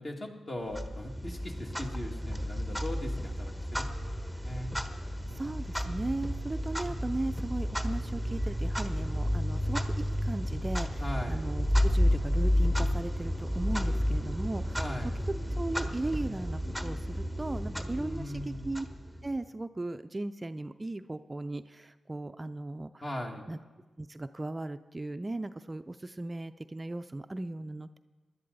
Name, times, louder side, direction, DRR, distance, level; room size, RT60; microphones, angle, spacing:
voice 1, 0.0-3.9 4.4-4.7 11.0-11.5 14.8-15.2 18.0-18.7 23.0-23.5, left 1 dB, 40° left, 0 dB, 2.3 m, -39 dB
Clock, 0.7-19.4, equal, 10° left, 1.2 m, -31 dB
voice 2, 5.3-14.8 15.6-18.9 19.2-23.0 23.5-23.6 24.0-28.0, right 2 dB, 25° right, 10 dB, 0.4 m, -37 dB
16.5 x 11.0 x 4.0 m, 1.3 s
cardioid pair, 50°, 0 cm